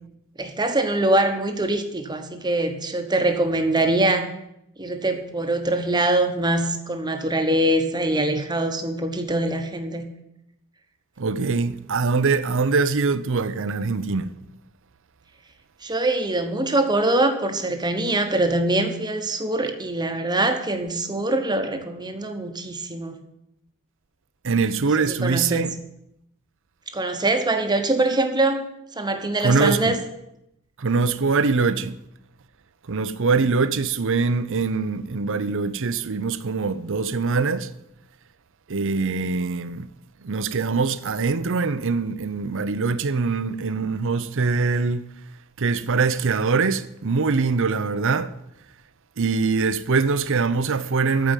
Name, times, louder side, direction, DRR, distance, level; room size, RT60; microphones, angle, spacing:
voice 1, 0.4-4.3 4.8-10.1 15.8-23.2 25.0-25.7 26.9-28.6 28.9-30.0, right 2 dB, 20° right, 1.2 m, -23 dB
voice 2, 11.2-14.3 24.4-25.7 29.4-30.0 30.8-32.0 32.9-37.7 38.7-39.9 40.2-45.1 45.6-48.3 49.2-51.3, right 4 dB, 65° right, 0.7 m, -23 dB
14.5 x 5.1 x 9.1 m
head